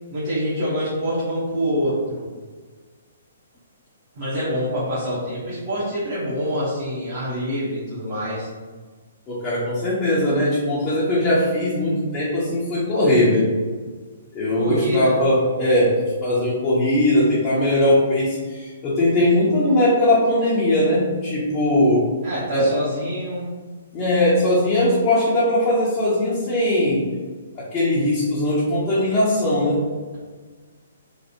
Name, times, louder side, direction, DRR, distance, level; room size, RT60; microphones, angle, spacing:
voice 1, 0.1-2.2 4.2-8.5 14.5-15.2 22.2-23.5, equal, 40° right, -10 dB, 1.1 m, -25 dB
voice 2, 9.3-13.5 14.3-22.1 22.5-22.7 23.9-27.0 27.5-29.8, left 1 dB, 20° left, -8 dB, 0.7 m, -20 dB
3.2 x 2.5 x 2.8 m, 1.4 s
figure-of-eight pair, 125°, 0 cm